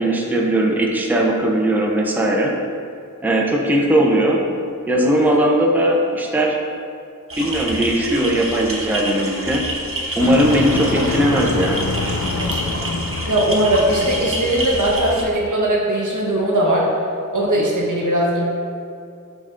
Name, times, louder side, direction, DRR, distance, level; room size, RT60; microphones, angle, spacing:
voice 1, 0.0-2.5 3.2-4.4 4.9-6.6 7.4-9.7 10.2-11.8, right 1 dB, 5° right, -1 dB, 0.6 m, -18 dB
sound 1, 7.3-15.2, right 1 dB, 45° right, 0.9 m, -28 dB
Motor vehicle (road), 10.2-15.1, left 3 dB, 65° left, 0.6 m, -26 dB
voice 2, 13.2-16.9 17.3-18.4, right 1 dB, 75° right, -4 dB, 1.2 m, -19 dB
10.5 x 3.6 x 2.5 m, 2.4 s
wide cardioid pair, 60°, 31 cm